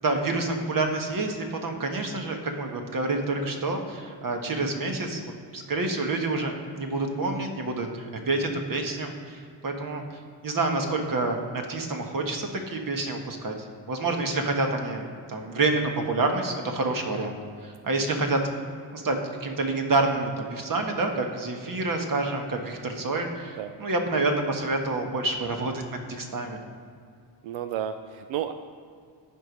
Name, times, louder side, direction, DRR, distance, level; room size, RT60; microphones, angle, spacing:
voice 1, 0.0-5.2 5.5-10.0 10.4-13.6 13.9-17.4 17.6-18.4 18.9-25.8 26.1-26.6, right 2 dB, 45° right, 3 dB, 1.5 m, -28 dB
voice 2, 27.4-28.5, right 10 dB, 80° right, 9 dB, 0.6 m, -31 dB
11.5 x 4.8 x 5.2 m, 2.4 s
cardioid pair, 75°, 45 cm